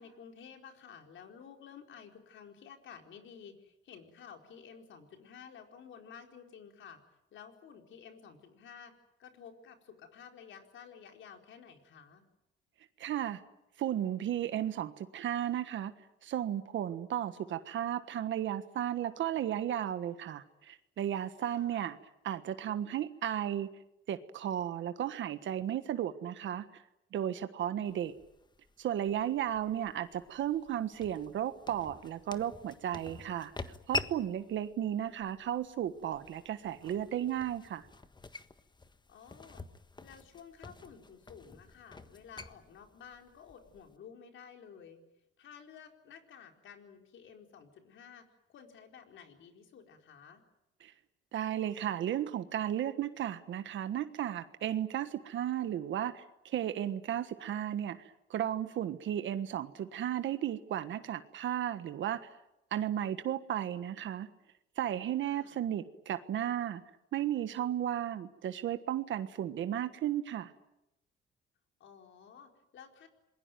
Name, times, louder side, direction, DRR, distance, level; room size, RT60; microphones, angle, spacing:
voice 1, 0.0-7.0 7.3-8.9 9.2-12.2 21.5-21.8 39.1-39.7 40.0-45.0 45.4-50.4 65.3-65.6 71.8-73.1, left 7 dB, 75° left, 4 dB, 4.4 m, -53 dB
voice 2, 13.0-13.4 13.8-15.9 16.2-22.0 22.2-23.7 24.1-26.8 27.1-28.1 28.8-37.9 50.8-50.9 51.3-62.3 62.7-64.3 64.8-66.8 67.1-70.5, right 11 dB, 75° right, 10 dB, 1.4 m, -34 dB
sound 1, 27.9-44.0, left 3 dB, 20° left, 1.5 m, -46 dB
27.5 x 21.5 x 9.2 m, 0.88 s
cardioid pair, 90°, 20 cm